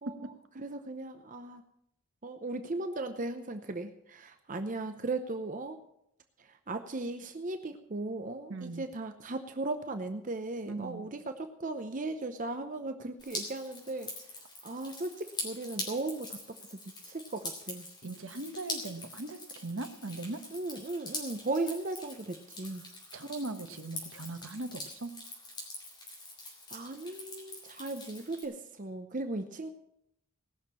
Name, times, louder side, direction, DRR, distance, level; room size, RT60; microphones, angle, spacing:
voice 1, 0.0-1.6 2.2-5.8 6.4-14.1 14.6-16.4 16.7-17.9 20.5-22.8 26.7-29.7, right 2 dB, 35° right, 7 dB, 0.7 m, -37 dB
voice 2, 8.5-8.9 10.7-11.1 18.0-20.4 23.1-25.1, right 2 dB, 65° right, 8 dB, 1.2 m, -39 dB
Drip, 13.2-28.4, left 2 dB, 20° left, 3.3 m, -44 dB
19.0 x 6.6 x 7.3 m, 0.77 s
head